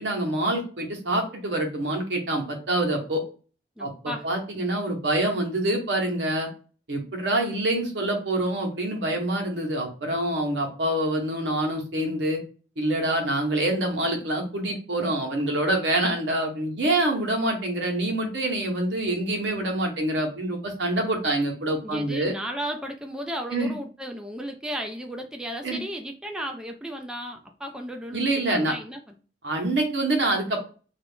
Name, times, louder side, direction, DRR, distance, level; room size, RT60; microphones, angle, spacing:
voice 1, 0.0-3.2 3.8-6.5 6.9-12.4 12.8-22.3 23.5-23.7 25.6-25.8 28.1-28.7 29.4-30.6, right 1 dB, 80° right, 2 dB, 1.0 m, -26 dB
voice 2, 3.8-4.3 21.8-29.1, equal, 5° right, 3 dB, 0.3 m, -34 dB
2.4 x 2.4 x 3.4 m, 0.37 s
head